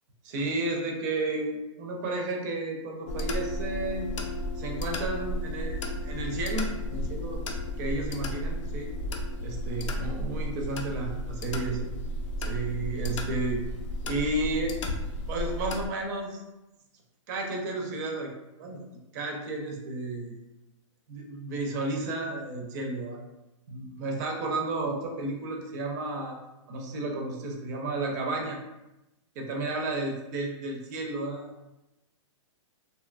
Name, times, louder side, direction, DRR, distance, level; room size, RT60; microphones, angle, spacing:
voice 1, 0.2-4.1 4.6-7.4 7.8-8.9 9.4-11.9 12.4-13.7 14.0-14.8 15.3-16.4 17.3-18.3 18.6-18.8 19.1-20.4 21.1-23.2 23.7-26.4 26.7-28.6 29.4-31.5, right 2 dB, 35° right, 1 dB, 0.4 m, -32 dB
sound 1, 3.1-15.9, left 1 dB, 70° left, 0.4 m, -33 dB
2.8 x 2.2 x 2.4 m, 0.97 s
hypercardioid pair, 155°, 16 cm